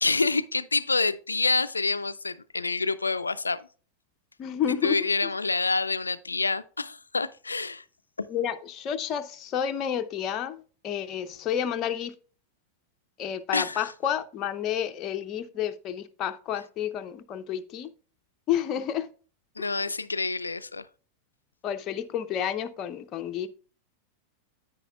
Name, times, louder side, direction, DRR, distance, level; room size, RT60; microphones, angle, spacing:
voice 1, 0.0-3.6 4.8-7.8 8.2-8.3 13.5-13.8 19.6-20.9, left 3 dB, 80° left, 0.4 m, -27 dB
voice 2, 4.4-5.3 8.3-12.1 13.2-17.9 18.5-19.1 19.6-19.9 21.6-23.5, left 9 dB, 35° left, 0.6 m, -30 dB
9.8 x 8.8 x 2.3 m
figure-of-eight pair, 90°, 0 cm